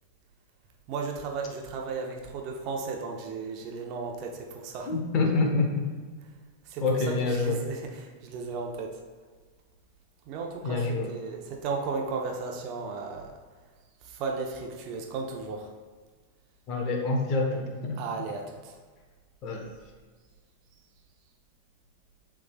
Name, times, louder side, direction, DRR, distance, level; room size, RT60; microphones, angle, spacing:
voice 1, 0.9-4.9 6.6-9.0 10.2-13.3 14.0-15.7 18.0-18.8, right 4 dB, 40° right, 1 dB, 1.0 m, -35 dB
voice 2, 4.9-5.9 6.8-7.6 10.6-11.1 16.7-18.0 19.4-19.6, left 3 dB, 35° left, 2 dB, 1.2 m, -26 dB
11.0 x 3.7 x 2.4 m, 1.5 s
figure-of-eight pair, 90°, 0 cm